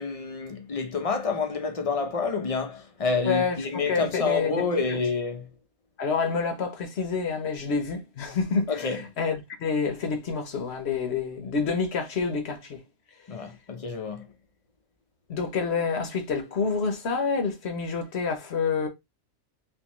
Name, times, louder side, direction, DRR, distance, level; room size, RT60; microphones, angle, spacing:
voice 1, 0.0-5.5 8.7-9.0 13.3-14.3, left 4 dB, 35° left, 0.6 m, -28 dB
voice 2, 3.2-5.0 6.0-12.8 15.3-18.9, left 5 dB, 55° left, 1.1 m, -28 dB
3.7 x 3.1 x 3.0 m
omnidirectional pair, 1.4 m